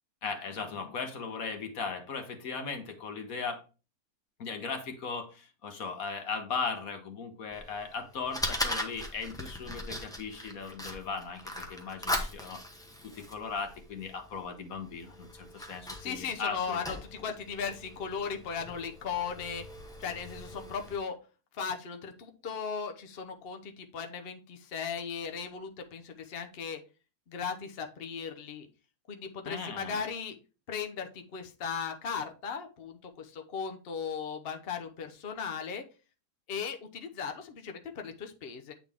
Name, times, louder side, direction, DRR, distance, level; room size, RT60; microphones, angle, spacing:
voice 1, 0.2-3.6 4.4-12.6 13.0-16.8 29.4-30.0, left 5 dB, 60° left, 6 dB, 1.5 m, -37 dB
Fire, 7.5-21.0, left 1 dB, 5° left, 0.7 m, -40 dB
voice 2, 16.0-19.6 20.0-21.2 21.5-26.8 27.3-28.7 29.1-30.4 30.7-35.8 36.5-38.7, left 6 dB, 45° left, 5 dB, 0.9 m, -37 dB
8.8 x 4.0 x 3.5 m, 0.33 s
omnidirectional pair, 1.7 m